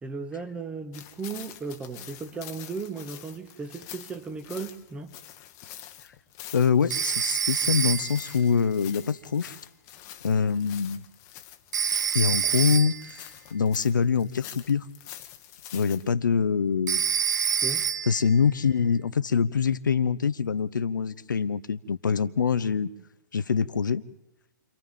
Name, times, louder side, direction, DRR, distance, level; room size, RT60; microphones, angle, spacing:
voice 1, 0.0-5.1 17.6-17.9, right 4 dB, 10° right, 1.2 m, -36 dB
sound 1, 0.9-16.1, left 12 dB, 30° left, 1.2 m, -46 dB
voice 2, 6.5-9.6 10.2-11.0 12.1-13.3 13.5-14.8 15.7-17.1 18.1-22.9 23.3-24.0, left 6 dB, 70° left, 0.9 m, -24 dB
Telephone, 6.9-8.3 11.7-13.1 16.9-18.3, right 8 dB, 60° right, 0.6 m, -27 dB
30.0 x 26.5 x 3.7 m
figure-of-eight pair, 120°, 11 cm